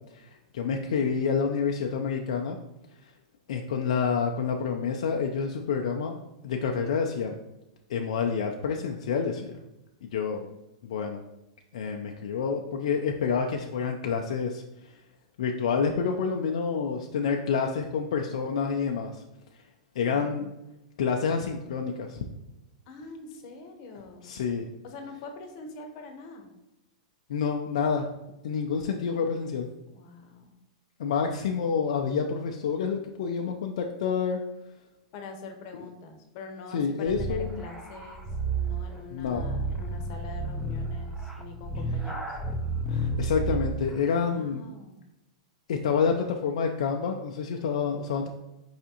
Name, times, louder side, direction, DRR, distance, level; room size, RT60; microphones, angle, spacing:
voice 1, 0.1-2.6 3.0-3.1 3.5-6.1 6.4-7.4 7.9-9.6 10.0-10.4 10.8-11.2 11.7-15.0 15.4-19.2 20.0-20.5 21.0-22.3 24.2-24.7 27.3-28.1 28.4-29.7 31.0-34.4 36.7-37.6 39.1-39.5 42.9-44.6 45.7-48.3, left 6 dB, 75° left, 2 dB, 0.4 m, -28 dB
voice 2, 20.1-20.5 22.9-24.3 24.8-26.5 29.9-30.5 35.1-42.4 44.1-45.0, left 3 dB, 50° left, 4 dB, 0.8 m, -44 dB
sound 1, 37.1-43.9, right 2 dB, 5° right, 0.5 m, -31 dB
4.8 x 3.5 x 2.8 m, 0.93 s
hypercardioid pair, 125°, 4 cm